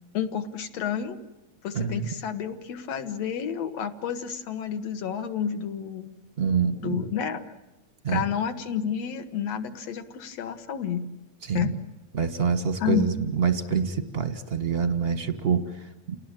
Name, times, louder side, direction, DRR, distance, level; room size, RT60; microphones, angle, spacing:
voice 1, 0.1-1.2 1.6-6.1 6.7-7.4 8.1-11.0 11.5-11.7 12.8-13.1, left 8 dB, 65° left, 8 dB, 2.6 m, -30 dB
voice 2, 1.7-2.1 6.4-7.1 8.0-8.2 11.4-11.7 12.1-16.2, right 6 dB, 35° right, 10 dB, 0.9 m, -26 dB
29.5 x 18.5 x 9.0 m, 0.99 s
omnidirectional pair, 3.3 m